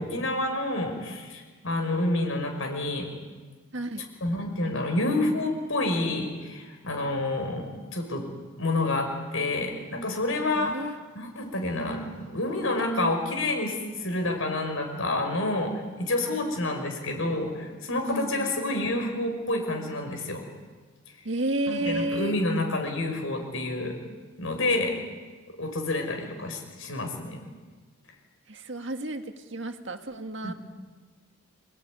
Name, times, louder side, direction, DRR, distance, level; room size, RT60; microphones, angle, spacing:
voice 1, 0.0-3.1 4.2-8.2 8.6-10.7 11.1-15.7 16.0-20.5 21.7-24.0 24.4-25.0 25.6-27.4 30.4-30.6, left 2 dB, 70° left, 3 dB, 6.2 m, -28 dB
voice 2, 3.7-4.1 10.5-11.0 18.1-18.5 21.2-22.4 28.5-30.5, right 1 dB, 55° right, 6 dB, 1.9 m, -31 dB
28.0 x 19.5 x 9.9 m, 1.4 s
head